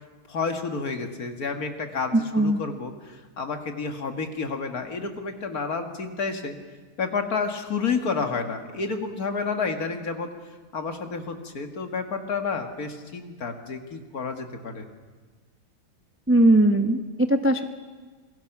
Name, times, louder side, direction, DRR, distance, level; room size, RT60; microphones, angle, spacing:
voice 1, 0.3-6.6 7.0-10.3 10.7-14.8, left 4 dB, 50° left, 5 dB, 2.1 m, -30 dB
voice 2, 16.3-17.6, right 1 dB, 20° right, 7 dB, 0.4 m, -19 dB
27.5 x 21.0 x 6.0 m, 1.4 s
omnidirectional pair, 2.1 m